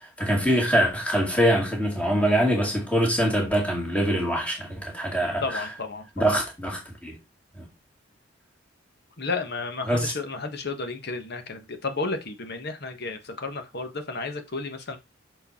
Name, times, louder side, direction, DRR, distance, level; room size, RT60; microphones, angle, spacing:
voice 1, 0.2-5.7 6.2-7.2 7.6-7.7 9.9-10.1, equal, 5° left, 2.2 m, -24 dB
voice 2, 5.4-6.4 9.2-15.0, left 3 dB, 55° left, 1.4 m, -32 dB
6.3 x 5.0 x 4.3 m
head